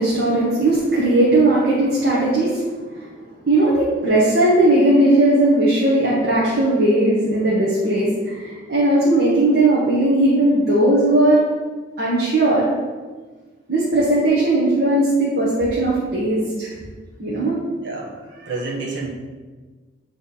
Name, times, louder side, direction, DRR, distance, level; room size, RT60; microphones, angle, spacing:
voice 1, 0.0-2.6 2.9-3.0 3.4-11.4 12.0-12.6 13.7-16.7 17.2-17.6, right 1 dB, 55° right, -7 dB, 1.3 m, -17 dB
voice 2, 17.8-19.1, right 3 dB, 85° right, -3 dB, 1.4 m, -29 dB
9.0 x 3.4 x 4.2 m, 1.4 s
head